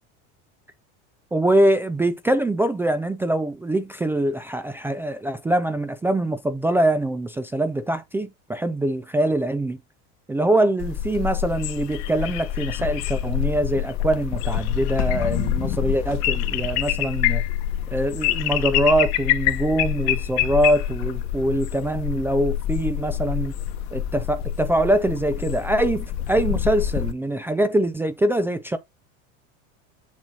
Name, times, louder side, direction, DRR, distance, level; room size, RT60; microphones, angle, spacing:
voice 1, 1.3-9.8 10.3-17.4 17.9-23.5 23.9-28.8, right 1 dB, 5° right, 0.3 m, -23 dB
sound 1, 10.8-27.1, left 12 dB, 60° left, 1.1 m, -26 dB
7.2 x 6.1 x 2.8 m
supercardioid pair, 135°, 31 cm